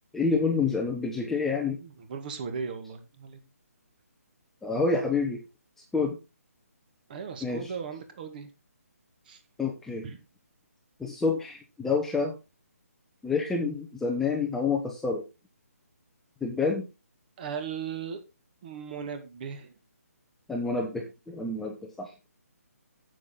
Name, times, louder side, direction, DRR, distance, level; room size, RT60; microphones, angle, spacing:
voice 1, 0.1-1.8 4.6-5.4 5.9-6.2 7.4-7.6 9.6-10.1 11.0-12.3 13.2-15.2 16.4-16.8 20.5-22.1, left 4 dB, 5° left, 1 dB, 0.9 m, -28 dB
voice 2, 1.8-3.5 7.1-8.5 9.3-9.4 10.0-10.2 17.4-18.2 18.6-19.7, right 6 dB, 35° right, 8 dB, 1.9 m, -37 dB
9.2 x 7.6 x 3.9 m, 0.28 s
hypercardioid pair, 155°, 9 cm